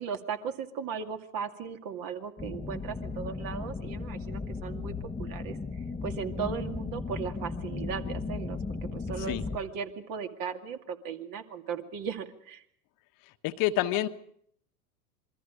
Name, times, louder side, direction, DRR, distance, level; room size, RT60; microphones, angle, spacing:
voice 1, 0.0-12.6, right 7 dB, 45° right, 6 dB, 2.3 m, -37 dB
sound 1, 2.4-9.6, left 4 dB, 10° left, 1.2 m, -36 dB
voice 2, 13.4-14.1, left 14 dB, 45° left, 8 dB, 1.3 m, -27 dB
27.0 x 22.5 x 5.1 m, 0.67 s
hypercardioid pair, 95°, 47 cm